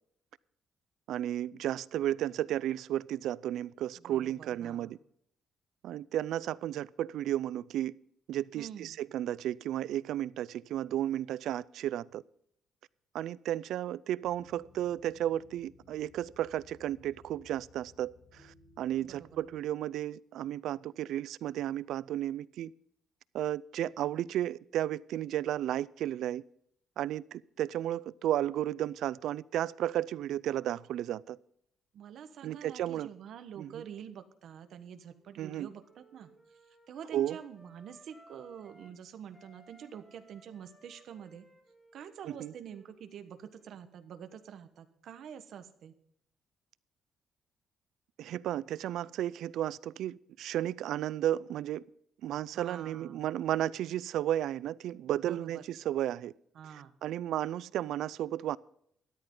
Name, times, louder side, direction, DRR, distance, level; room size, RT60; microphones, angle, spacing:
voice 1, 1.1-5.0 5.8-7.9 8.3-12.2 13.1-22.7 23.3-26.4 27.0-31.4 32.4-33.1 33.6-33.8 35.4-35.7 37.1-37.4 42.3-42.5 48.2-51.8 52.2-56.3 57.0-58.6, right 12 dB, 75° right, 0.4 m, -33 dB
voice 2, 4.0-4.9 8.6-9.0 19.0-19.4 31.9-36.3 36.9-41.5 41.9-45.9 52.5-53.3 55.2-55.6 56.5-57.0, right 8 dB, 60° right, 1.2 m, -47 dB
sound 1, 14.2-19.6, left 4 dB, 60° left, 5.2 m, -61 dB
Wind instrument woodwind instrument, 34.6-39.0 39.3-43.8, right 1 dB, 5° left, 2.1 m, -61 dB
13.0 x 13.0 x 3.8 m
cardioid pair, 145°, 0 cm